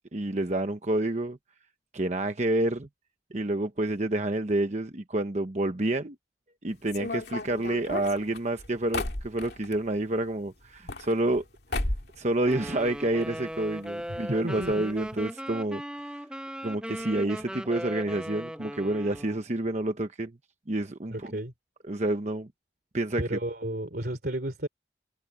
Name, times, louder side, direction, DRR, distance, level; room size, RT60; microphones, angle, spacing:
voice 1, 0.1-1.4 1.9-2.9 3.3-6.2 6.6-11.4 12.2-16.2 16.6-20.4 20.7-21.3 21.9-22.5 22.9-23.2, right 1 dB, 40° right, 1.0 m, -29 dB
sound 1, 6.9-9.8 10.6-11.4 11.7-12.2 12.5-13.3 13.5-13.6 13.8-13.9 14.6-14.7 15.0-15.2, left 2 dB, 65° left, 2.5 m, -34 dB
Wind instrument woodwind instrument, 12.5-19.4, equal, 5° right, 0.9 m, -38 dB
voice 2, 14.4-14.9 21.1-21.5 23.2-24.7, right 1 dB, 60° right, 3.1 m, -33 dB
head